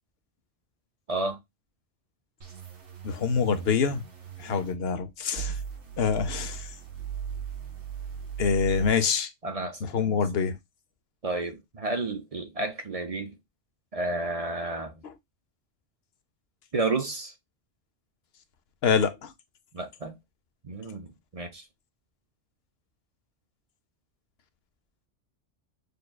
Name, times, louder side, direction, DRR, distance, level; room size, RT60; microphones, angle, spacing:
voice 1, 1.1-1.4 9.4-10.2 11.2-13.4 13.9-15.0 16.7-17.3 19.7-20.1 20.6-21.6, right 2 dB, 40° right, 0.6 m, -31 dB
sound 1, 2.4-4.7 5.4-8.9, right 8 dB, 85° right, 1.5 m, -38 dB
voice 2, 3.0-4.0 4.4-5.6 6.0-6.7 8.4-9.3 9.9-10.6 18.8-19.3, left 6 dB, 65° left, 0.9 m, -25 dB
6.5 x 2.3 x 2.2 m
omnidirectional pair, 1.2 m